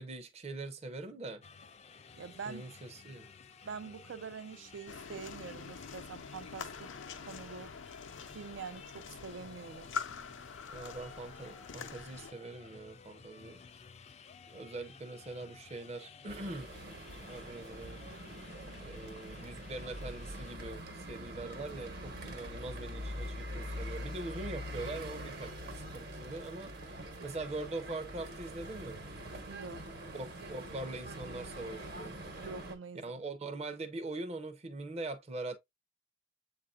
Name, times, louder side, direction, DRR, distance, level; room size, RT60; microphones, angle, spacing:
voice 1, 0.0-1.4 2.5-3.3 10.7-13.6 14.5-16.7 17.3-18.0 18.7-29.0 30.1-32.2 33.0-35.6, right 2 dB, 35° right, 0.6 m, -42 dB
sound 1, 1.4-20.5, left 5 dB, 35° left, 0.4 m, -55 dB
voice 2, 2.2-2.6 3.7-6.9 7.3-7.7 8.3-9.9 29.5-29.9 32.4-33.1, right 5 dB, 80° right, 0.4 m, -45 dB
sound 2, 4.9-12.3, left 6 dB, 90° left, 0.6 m, -45 dB
sound 3, 16.3-32.8, equal, 60° right, 1.1 m, -44 dB
7.5 x 2.6 x 2.3 m
head